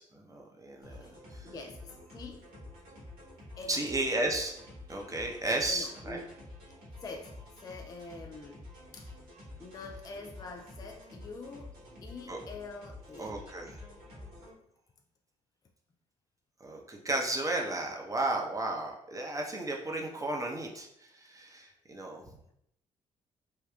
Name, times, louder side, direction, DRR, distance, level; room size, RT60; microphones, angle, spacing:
voice 1, 0.0-1.5 3.7-4.5 4.9-6.2 12.3-12.4 13.2-13.8 16.6-22.2, right 2 dB, 20° right, 0 dB, 0.7 m, -34 dB
voice 2, 0.8-1.2 1.4-2.6 3.6-3.9 5.3-6.2 7.0-8.6 8.9-9.1 9.6-11.8 12.0-13.4, left 3 dB, 20° left, 4 dB, 0.3 m, -45 dB
sound 1, 0.8-14.5, left 1 dB, 60° right, 1.3 m, -49 dB
3.6 x 2.3 x 2.3 m, 0.75 s
figure-of-eight pair, 45°, 18 cm